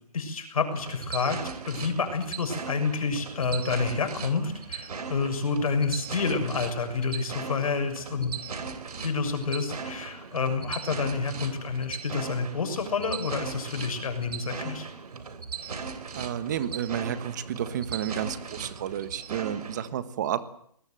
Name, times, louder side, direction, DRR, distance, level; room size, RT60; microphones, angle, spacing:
voice 1, 0.1-1.4 1.7-8.4 9.0-14.9, left 4 dB, 60° left, 7 dB, 6.6 m, -29 dB
sound 1, 0.7-19.9, right 5 dB, 75° right, 3.6 m, -38 dB
voice 2, 16.1-20.4, right 10 dB, 30° right, 13 dB, 1.4 m, -31 dB
24.0 x 20.0 x 7.7 m, 0.67 s
hypercardioid pair, 170°, 20 cm